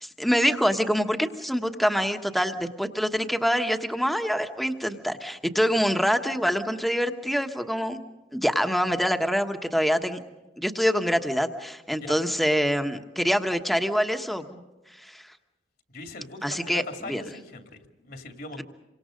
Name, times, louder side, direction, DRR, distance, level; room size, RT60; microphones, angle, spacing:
voice 1, 0.0-8.0 8.3-10.2 10.6-14.6 15.0-15.3 16.4-17.2, equal, ahead, 6 dB, 1.3 m, -25 dB
voice 2, 15.9-18.6, left 3 dB, 60° left, 5 dB, 2.6 m, -40 dB
28.0 x 25.0 x 5.2 m, 1.1 s
head